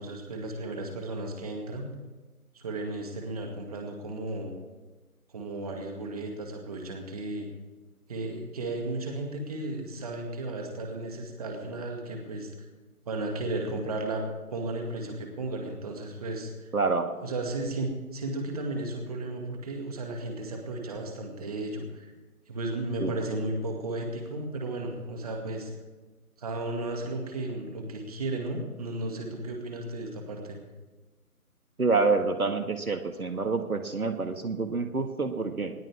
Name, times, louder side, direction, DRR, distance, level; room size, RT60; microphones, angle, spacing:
voice 1, 0.0-1.9 2.5-4.6 5.3-7.5 8.1-12.5 13.1-16.7 17.2-22.1 22.5-25.7 26.4-30.6, right 2 dB, 25° right, 2 dB, 2.3 m, -34 dB
voice 2, 16.7-17.1 23.0-23.2 31.8-35.7, right 4 dB, 70° right, 6 dB, 1.9 m, -27 dB
20.0 x 19.0 x 3.6 m, 1.2 s
figure-of-eight pair, 155°, 44 cm